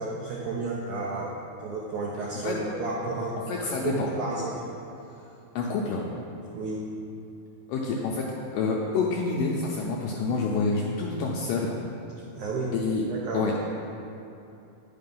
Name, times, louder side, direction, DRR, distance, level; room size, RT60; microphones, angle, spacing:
voice 1, 0.0-1.3 1.6-4.6 6.5-6.9 12.3-12.7 13.1-13.5, right 3 dB, 80° right, -4 dB, 1.7 m, -32 dB
voice 2, 3.5-4.1 5.6-6.0 7.7-8.3 8.5-11.8 12.7-13.0 13.3-13.6, left 4 dB, 80° left, -2 dB, 2.0 m, -27 dB
10.0 x 5.8 x 5.4 m, 2.8 s
omnidirectional pair, 4.6 m